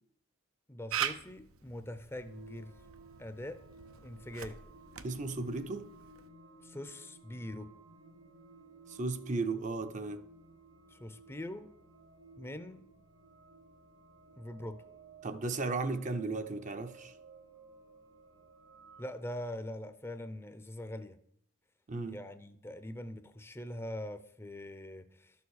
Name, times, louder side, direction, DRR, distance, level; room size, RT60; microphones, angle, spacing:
voice 1, 0.7-2.8 3.2-3.6 4.0-4.6 6.6-7.7 10.9-11.7 12.4-12.8 14.4-14.8 19.0-21.2 22.1-25.3, left 1 dB, 10° left, 0.6 m, -43 dB
Camera, 0.9-6.3, right 9 dB, 85° right, 0.9 m, -42 dB
sound 1, 2.1-19.1, right 2 dB, 65° right, 1.6 m, -56 dB
voice 2, 5.0-5.9 8.9-10.2 15.2-17.2 21.9-22.2, right 3 dB, 35° right, 0.6 m, -35 dB
12.5 x 7.1 x 6.4 m
head